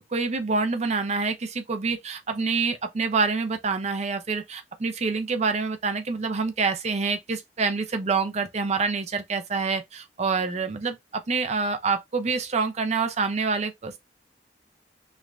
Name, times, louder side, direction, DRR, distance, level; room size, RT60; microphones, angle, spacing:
voice 1, 0.1-14.0, right 4 dB, 40° right, 0.5 m, -27 dB
3.2 x 2.1 x 2.4 m
head